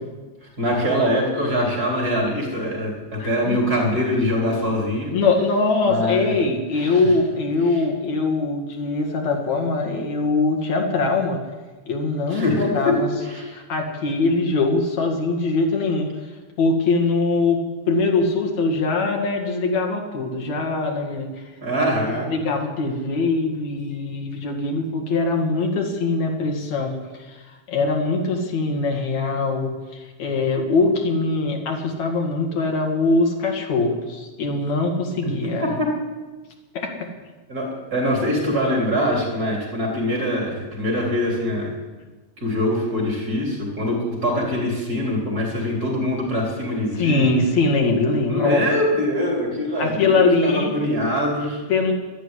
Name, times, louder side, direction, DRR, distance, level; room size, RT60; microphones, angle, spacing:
voice 1, 0.4-5.2 5.9-6.3 6.8-7.0 7.7-7.8 12.3-13.0 13.3-13.5 21.6-22.3 35.2-35.3 35.6-35.9 37.5-41.7 42.4-47.2 48.3-51.6, equal, 30° right, -1 dB, 4.2 m, -23 dB
voice 2, 3.2-3.6 5.1-11.4 11.9-13.1 13.5-16.1 16.6-21.3 22.1-27.4 27.7-35.8 36.7-37.1 46.9-48.6 49.8-50.7 51.7-51.9, left 3 dB, 70° left, 2 dB, 3.2 m, -22 dB
12.5 x 11.5 x 9.9 m, 1.2 s
omnidirectional pair, 3.3 m